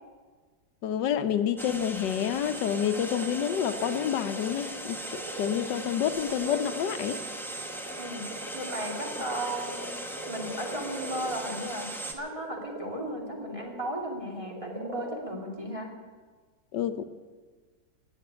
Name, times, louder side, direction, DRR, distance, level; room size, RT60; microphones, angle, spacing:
voice 1, 0.8-7.2 16.7-17.0, left 9 dB, 80° left, 10 dB, 1.5 m, -28 dB
sound 1, 1.6-12.1, right 1 dB, ahead, 1.0 m, -39 dB
sound 2, 2.7-14.0 14.4-15.3, right 2 dB, 55° right, 3.1 m, -41 dB
voice 2, 8.0-10.0 10.3-15.9, equal, 20° right, -1 dB, 2.5 m, -36 dB
17.0 x 7.6 x 9.8 m, 1.4 s
omnidirectional pair, 1.9 m